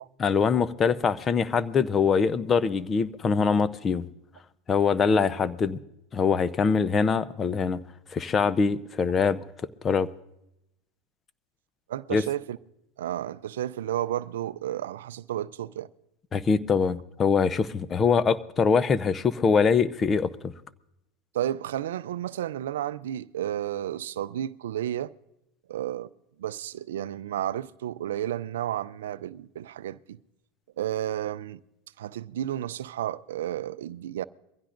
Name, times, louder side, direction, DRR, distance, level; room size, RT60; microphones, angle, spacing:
voice 1, 0.2-4.1 4.7-5.8 6.1-7.8 8.1-9.4 9.8-10.1 12.1-12.2 16.3-20.5, left 5 dB, 30° left, 0.6 m, -23 dB
voice 2, 11.9-12.6 13.0-15.9 21.3-25.1 25.7-26.1 26.4-30.2 30.8-31.6 32.0-34.2, right 11 dB, 85° right, 0.4 m, -32 dB
23.0 x 15.5 x 2.6 m
hypercardioid pair, 100°, 0 cm